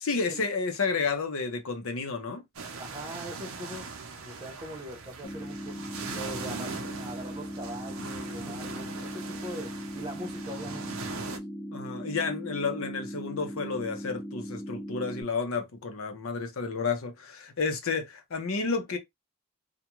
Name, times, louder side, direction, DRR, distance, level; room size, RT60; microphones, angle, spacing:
voice 1, 0.0-2.4 11.7-19.0, left 4 dB, 75° left, 0.7 m, -31 dB
sound 1, 2.5-11.4, right 4 dB, 80° right, 0.6 m, -40 dB
voice 2, 2.8-3.9 4.2-5.8 6.1-11.4, equal, 20° right, 0.6 m, -42 dB
sound 2, 5.2-15.2, equal, 35° left, 0.6 m, -39 dB
2.4 x 2.2 x 2.9 m
head